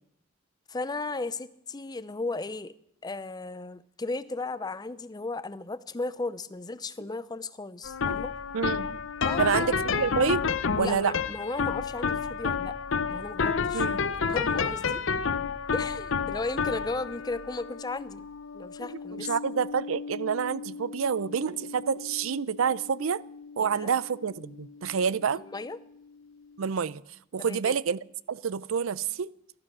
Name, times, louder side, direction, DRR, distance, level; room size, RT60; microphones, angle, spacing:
voice 1, 0.7-2.7 3.0-8.3 9.2-9.5 10.7-12.8 13.1-13.9 14.3-15.0 15.7-18.2 18.5-19.3 23.6-23.9 25.3-25.8 27.4-27.7, left 3 dB, 20° left, 0.5 m, -35 dB
sound 1, 7.8-25.0, left 5 dB, 70° left, 0.7 m, -31 dB
voice 2, 8.5-9.0 9.4-11.1 13.7-14.0 18.8-23.2 23.6-25.4 26.6-27.0 27.3-28.0 28.3-29.3, right 6 dB, 85° right, 0.5 m, -28 dB
14.5 x 12.5 x 6.1 m
head